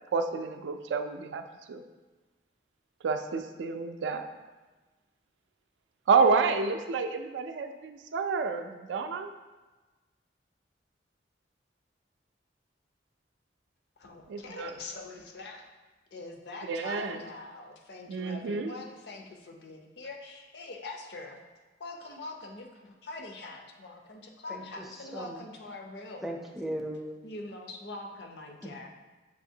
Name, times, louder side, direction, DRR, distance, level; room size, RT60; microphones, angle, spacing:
voice 1, 0.1-1.4 1.7-1.8 3.0-4.2 6.1-9.3 14.3-14.7 16.7-17.2 18.1-18.7, right 5 dB, 85° right, 7 dB, 0.3 m, -29 dB
voice 2, 14.0-15.7 16.1-21.4 21.8-26.2 27.2-28.9, left 2 dB, 65° left, 2 dB, 0.6 m, -43 dB
voice 3, 24.5-24.8 25.1-25.4 26.2-27.2 28.6-28.9, right 1 dB, ahead, 0 dB, 0.4 m, -37 dB
6.5 x 2.8 x 2.7 m, 1.2 s
head